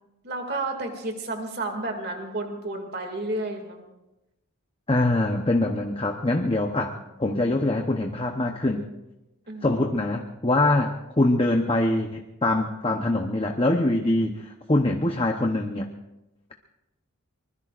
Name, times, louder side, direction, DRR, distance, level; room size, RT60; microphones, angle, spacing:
voice 1, 0.2-3.8 6.9-7.0 9.5-9.7, right 2 dB, 45° right, 3 dB, 2.4 m, -31 dB
voice 2, 4.9-6.9 7.2-8.8 9.6-15.9, left 2 dB, 25° left, 3 dB, 0.9 m, -24 dB
24.5 x 21.0 x 2.5 m, 0.95 s
head